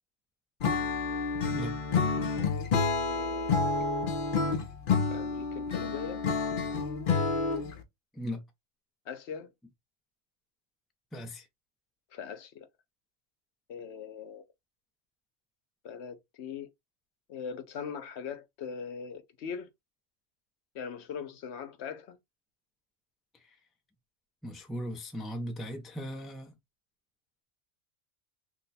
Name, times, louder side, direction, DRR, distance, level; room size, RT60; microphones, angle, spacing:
Acoustic guitar / Strum, 0.6-7.8, left 4 dB, 55° left, 0.8 m, -29 dB
voice 1, 3.1-3.8 5.1-6.2 9.1-9.5 12.1-12.7 13.7-14.4 15.8-16.7 17.3-19.7 20.7-22.2, left 6 dB, 80° left, 0.9 m, -40 dB
voice 2, 11.1-11.5 24.4-26.5, equal, ahead, 0.4 m, -37 dB
2.9 x 2.2 x 4.0 m
omnidirectional pair, 1.1 m